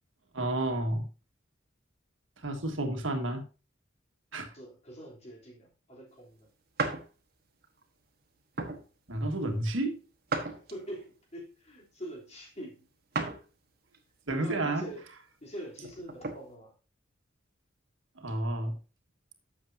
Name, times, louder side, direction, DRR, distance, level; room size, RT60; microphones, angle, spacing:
voice 1, 0.3-1.0 2.4-3.4 4.3-4.5 9.1-10.0 14.3-14.8 18.2-18.7, right 1 dB, 85° right, 1.8 m, -31 dB
voice 2, 4.5-6.5 10.5-12.8 14.3-15.1 15.4-16.7, equal, 35° left, 3.4 m, -44 dB
sound 1, 6.8-7.1 7.6-7.8 8.6-8.8 10.3-11.0 13.1-13.5 13.9-14.0 15.7-16.4, right 3 dB, 55° right, 1.4 m, -34 dB
12.0 x 7.3 x 2.7 m
head